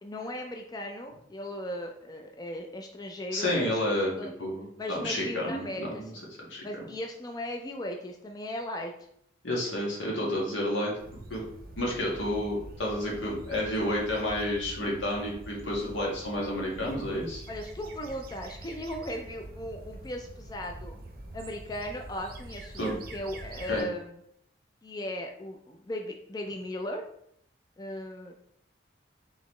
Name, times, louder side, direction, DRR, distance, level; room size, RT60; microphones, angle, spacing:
voice 1, 0.0-4.3 4.8-6.2 6.6-8.9 17.5-21.0 21.3-24.1 24.8-27.0 27.8-28.4, left 1 dB, 20° left, 3 dB, 0.3 m, -37 dB
voice 2, 3.3-4.1 4.4-6.1 6.5-6.6 9.4-10.9 11.3-11.4 11.8-17.4 22.8-22.9 23.7-23.9, left 1 dB, 85° left, -3 dB, 1.5 m, -30 dB
sound 1, 11.0-23.8, right 1 dB, 50° right, 0.6 m, -45 dB
3.9 x 3.8 x 3.1 m, 0.71 s
head